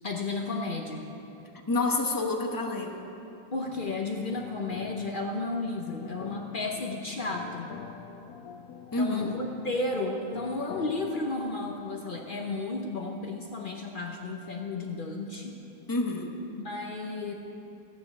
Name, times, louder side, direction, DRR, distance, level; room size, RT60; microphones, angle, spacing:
voice 1, 0.0-1.1 3.5-7.7 9.0-15.6 16.6-17.3, left 3 dB, 85° left, 1 dB, 0.4 m, -33 dB
voice 2, 1.7-2.9 8.9-9.3 15.9-16.3, left 2 dB, 20° left, 1 dB, 0.6 m, -28 dB
sound 1, 3.7-11.4, left 7 dB, 70° left, 0.8 m, -45 dB
14.0 x 9.5 x 7.3 m, 2.9 s
omnidirectional pair, 2.2 m